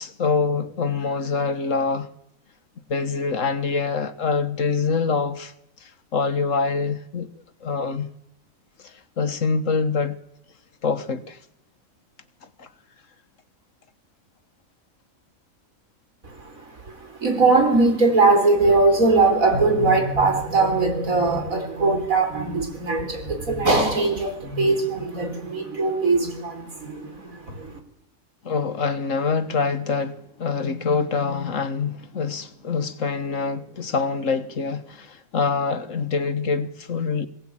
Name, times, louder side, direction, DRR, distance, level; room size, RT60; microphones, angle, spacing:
voice 1, 0.0-2.1 2.9-5.5 5.8-7.3 7.6-8.1 8.8-10.2 10.8-11.4 12.6-12.7 28.4-37.3, left 5 dB, 65° left, 1.7 m, -25 dB
voice 2, 16.4-27.7, right 3 dB, 75° right, 4.6 m, -21 dB
22.0 x 17.5 x 8.8 m
omnidirectional pair, 1.4 m